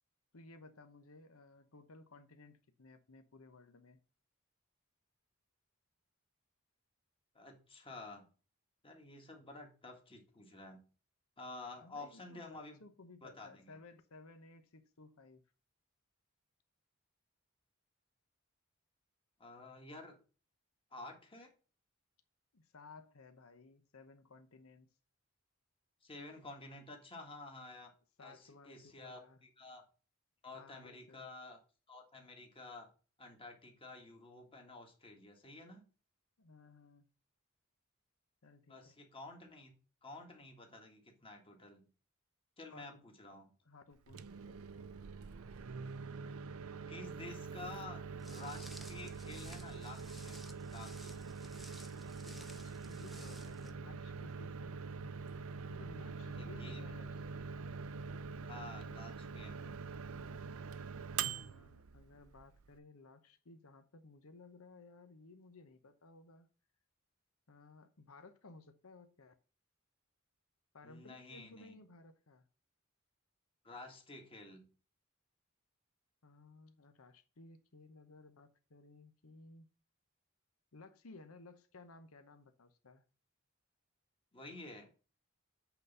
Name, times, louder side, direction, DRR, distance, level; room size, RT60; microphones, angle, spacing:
voice 1, 0.3-4.0 11.8-15.4 22.5-24.9 28.2-29.4 30.5-31.3 36.4-37.1 38.4-39.0 42.7-43.0 43.6-45.0 52.3-55.1 55.7-57.1 61.3-66.5 67.5-69.3 70.7-72.5 76.2-79.7 80.7-83.0, left 3 dB, 90° left, 0.9 m, -58 dB
voice 2, 7.3-8.3 8.8-10.8 11.4-12.8 13.2-13.8 19.4-20.2 20.9-21.5 26.0-27.9 28.2-29.8 30.4-31.6 31.9-32.9 33.2-35.9 38.7-39.7 40.0-41.9 42.6-43.5 46.9-51.1 56.3-57.0 58.4-59.8 70.8-71.7 73.6-74.6 84.3-84.9, left 2 dB, 25° left, 1.8 m, -51 dB
Microwave oven, 44.0-62.8, right 5 dB, 85° right, 0.6 m, -44 dB
Walk footsteps, 48.2-53.7, equal, ahead, 0.7 m, -56 dB
8.2 x 4.0 x 5.4 m
head